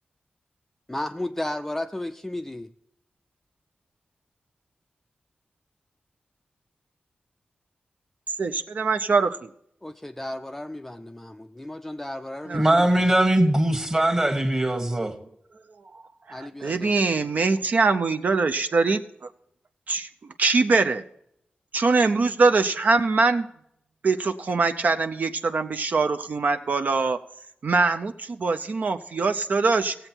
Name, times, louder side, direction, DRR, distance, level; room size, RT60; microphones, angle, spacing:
voice 1, 0.9-2.7 9.8-12.9 16.3-17.0, left 1 dB, 10° left, 0.4 m, -34 dB
voice 2, 8.4-9.5 12.5-12.6 16.3-19.3 19.9-20.1 20.4-21.0 21.7-23.5 24.0-27.2 27.6-29.9, right 4 dB, 55° right, 0.5 m, -23 dB
voice 3, 12.5-15.1, right 1 dB, 20° right, 1.3 m, -21 dB
16.5 x 7.8 x 4.4 m
wide cardioid pair, 145°, 3 cm